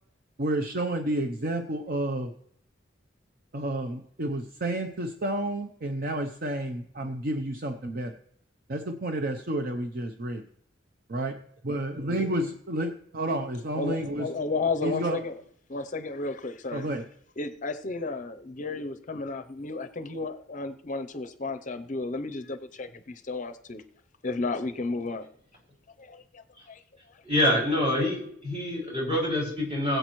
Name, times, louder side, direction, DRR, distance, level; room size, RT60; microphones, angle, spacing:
voice 1, 0.4-2.3 3.5-8.1 8.7-10.4 11.1-11.3 11.6-14.3 14.8-15.2 16.7-17.0, right 1 dB, 50° right, 6 dB, 0.7 m, -30 dB
voice 2, 13.7-15.4 15.7-16.9 17.4-23.8 24.2-25.3 26.0-27.2, left 3 dB, 40° left, 11 dB, 0.6 m, -33 dB
voice 3, 27.2-30.0, left 1 dB, 30° right, -5 dB, 5.7 m, -26 dB
20.5 x 7.9 x 3.1 m, 0.68 s
head